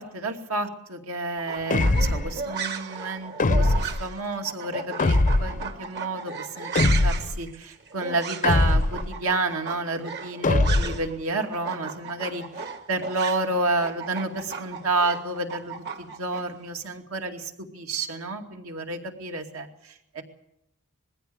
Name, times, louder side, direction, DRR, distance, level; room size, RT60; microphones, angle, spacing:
voice 1, 0.0-12.4 12.9-20.2, right 2 dB, 70° right, 3 dB, 2.5 m, -30 dB
sound 1, 1.4-11.1 11.4-16.4, right 5 dB, 50° right, 2.1 m, -35 dB
sound 2, 1.7-2.4 3.4-4.0 5.0-5.7 6.8-7.4 8.4-9.1 10.4-11.1, left 2 dB, 35° left, 0.7 m, -21 dB
22.0 x 16.0 x 8.8 m, 0.83 s
head